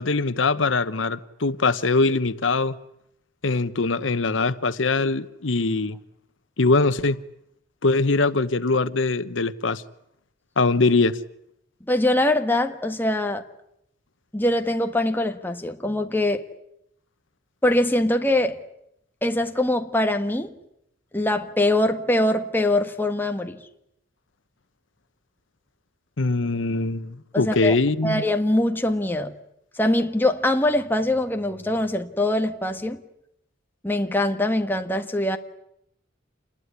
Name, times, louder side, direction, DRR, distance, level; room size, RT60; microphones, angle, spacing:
voice 1, 0.0-2.8 3.4-6.0 6.6-7.2 7.8-9.8 10.6-11.2 26.2-28.2, left 3 dB, 85° left, 1.0 m, -22 dB
voice 2, 11.9-13.4 14.3-16.4 17.6-18.6 19.2-20.5 21.1-23.6 27.3-27.8 28.0-29.3 29.7-33.0 33.8-35.4, left 1 dB, 10° left, 1.6 m, -23 dB
28.0 x 21.0 x 9.9 m
head